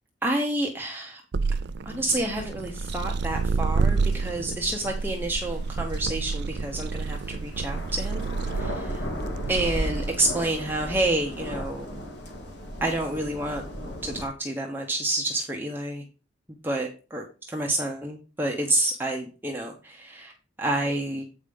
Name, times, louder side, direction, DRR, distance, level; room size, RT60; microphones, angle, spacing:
voice 1, 0.2-1.2 1.8-8.2 8.6-9.0 9.5-12.0 12.8-13.6 14.0-16.0 16.6-20.3 20.6-21.2, right 1 dB, 10° right, 1 dB, 1.0 m, -29 dB
sound 1, 1.3-10.2, right 4 dB, 60° right, 0.4 m, -29 dB
sound 2, 2.7-14.2, equal, 65° left, 2.2 m, -37 dB
8.0 x 5.1 x 5.3 m, 0.34 s
head